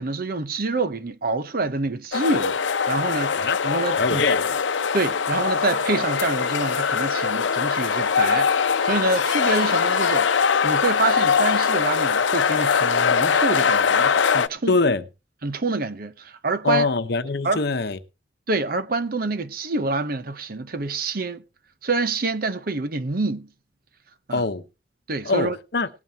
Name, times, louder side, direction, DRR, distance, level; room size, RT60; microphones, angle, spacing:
voice 1, 0.0-2.6 2.9-4.2 4.9-14.7 15.4-16.9 17.4-17.6 18.5-21.4 21.8-23.5 24.3-24.4 25.1-25.6, right 3 dB, 50° right, 0.8 m, -26 dB
sound 1, 2.1-14.5, left 6 dB, 90° left, 0.7 m, -22 dB
voice 2, 3.3-3.6 4.0-4.6 14.7-15.0 16.6-18.0 24.3-24.6 25.2-25.9, left 3 dB, 60° left, 0.9 m, -23 dB
18.5 x 9.2 x 2.8 m
head